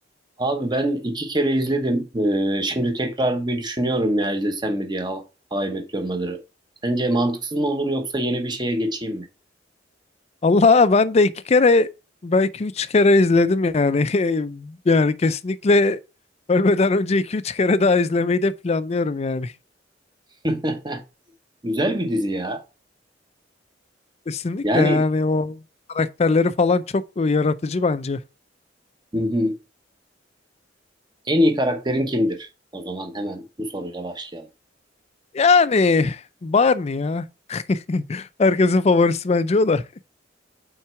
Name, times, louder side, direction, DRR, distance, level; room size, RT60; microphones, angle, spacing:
voice 1, 0.4-5.2 5.5-6.4 6.8-9.3 20.4-21.0 21.6-22.6 24.6-25.0 29.1-29.5 31.3-34.5, right 1 dB, 25° right, 1.1 m, -24 dB
voice 2, 10.4-11.9 12.2-16.0 16.5-19.5 24.3-25.6 25.9-28.2 35.3-39.8, left 3 dB, 35° left, 0.4 m, -19 dB
5.7 x 4.6 x 4.5 m
head